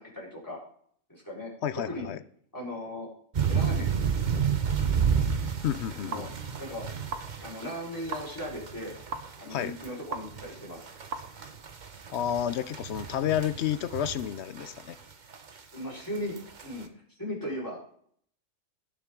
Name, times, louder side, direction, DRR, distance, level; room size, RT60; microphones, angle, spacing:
voice 1, 0.1-0.6 1.1-2.1 2.5-3.1 3.5-3.9 6.0-6.3 6.6-6.8 7.4-8.9 9.4-10.9 15.7-16.4 16.6-16.9 17.2-17.8, left 1 dB, 15° left, -5 dB, 4.5 m, -37 dB
voice 2, 1.6-2.2 5.6-6.3 9.5-9.8 12.1-15.0, left 10 dB, 65° left, 14 dB, 0.8 m, -30 dB
sound 1, 3.3-14.9 15.3-15.6 16.2-16.6, right 7 dB, 40° right, 0.9 m, -31 dB
sound 2, 5.5-12.7, right 4 dB, 65° right, 1.4 m, -44 dB
17.5 x 7.1 x 3.8 m, 0.62 s
omnidirectional pair, 1.4 m